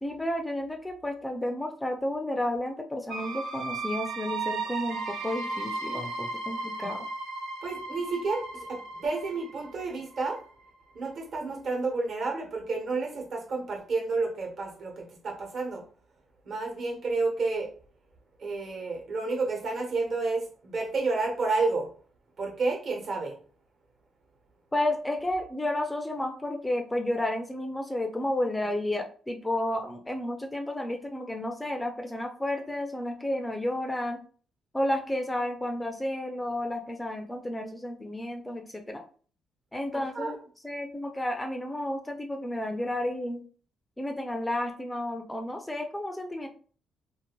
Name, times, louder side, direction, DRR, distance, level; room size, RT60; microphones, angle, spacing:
voice 1, 0.0-7.1 24.7-34.2 34.7-39.0 39.7-40.4 40.6-43.4 44.0-46.5, left 1 dB, 10° left, 5 dB, 0.3 m, -31 dB
sound 1, 3.1-10.7, right 3 dB, 90° right, 0.5 m, -35 dB
voice 2, 7.6-10.4 10.9-15.8 16.4-17.7 18.4-21.9 22.4-23.3 39.9-40.3, right 3 dB, 60° right, 0 dB, 1.1 m, -30 dB
2.6 x 2.4 x 2.9 m, 0.43 s
cardioid pair, 90°, 0 cm